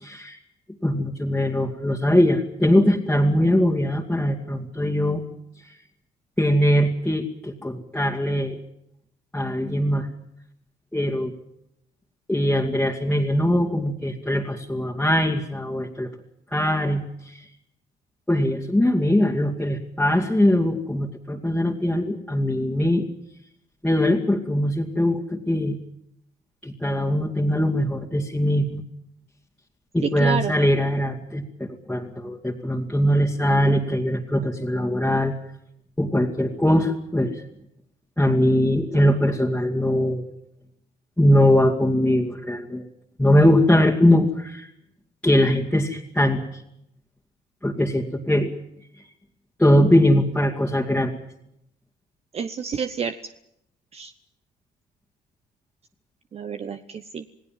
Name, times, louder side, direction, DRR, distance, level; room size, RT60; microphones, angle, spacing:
voice 1, 0.0-0.4 0.8-5.2 6.4-8.6 9.3-10.1 10.9-11.3 12.3-16.1 16.5-17.4 18.3-23.0 23.8-25.8 26.6-28.8 29.9-35.3 36.0-37.4 38.2-40.2 41.2-42.8 43.2-44.7 45.2-46.4 47.6-48.5 49.0-49.1 49.6-51.1, left 1 dB, 5° left, -3 dB, 2.4 m, -21 dB
voice 2, 30.0-30.5 52.3-53.2 53.9-54.1 56.3-57.2, right 7 dB, 35° right, 9 dB, 1.1 m, -29 dB
28.0 x 18.0 x 7.5 m, 0.77 s
cardioid pair, 110°, 17 cm